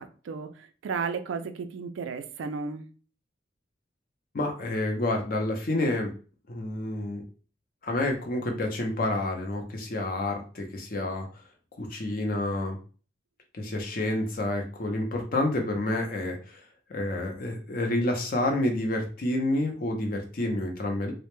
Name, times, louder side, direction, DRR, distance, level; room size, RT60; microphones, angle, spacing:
voice 1, 0.0-2.9, right 5 dB, 80° right, 9 dB, 0.3 m, -34 dB
voice 2, 4.3-6.1 6.5-7.2 7.8-11.3 11.8-12.8 13.5-16.6 16.9-21.1, left 1 dB, 45° left, 3 dB, 0.5 m, -29 dB
2.1 x 2.1 x 2.9 m, 0.38 s
head